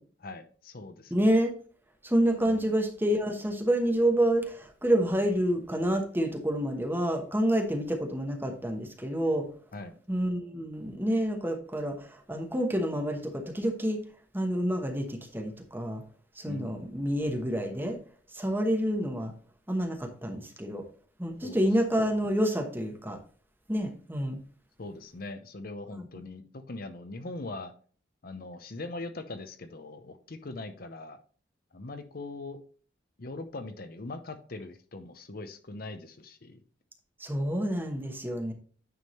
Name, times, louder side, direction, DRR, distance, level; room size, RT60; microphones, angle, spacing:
voice 1, 0.2-1.1 2.4-2.7 9.7-10.0 16.4-16.8 21.4-21.6 24.8-27.7 28.2-31.2 31.7-32.6 33.2-36.6, left 2 dB, 50° left, 9 dB, 0.7 m, -41 dB
voice 2, 1.1-1.5 2.0-9.4 10.1-14.0 14.3-16.0 16.4-18.0 18.3-19.3 19.7-20.8 21.2-23.2 23.7-24.4 26.0-26.1 37.2-38.5, equal, 10° right, 3 dB, 1.1 m, -28 dB
9.4 x 3.6 x 4.2 m, 0.43 s
head